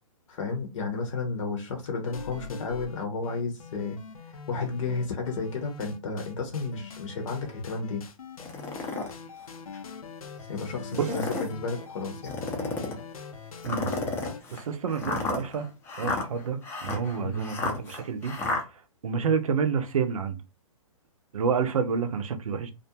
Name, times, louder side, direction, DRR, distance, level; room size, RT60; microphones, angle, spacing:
voice 1, 0.3-4.0 4.3-8.0 10.5-12.4 17.2-17.5, left 4 dB, 60° left, 0.8 m, -32 dB
sound 1, 2.0-14.4, left 5 dB, 90° left, 0.6 m, -43 dB
sound 2, 8.4-9.1 9.7-9.8 10.9-11.5 12.2-13.0 13.6-18.6, left 3 dB, 15° left, 0.5 m, -32 dB
voice 2, 14.5-15.7 16.0-18.3 19.0-20.4 21.3-22.7, right 6 dB, 75° right, 0.6 m, -28 dB
2.4 x 2.2 x 2.7 m
hypercardioid pair, 135°, 18 cm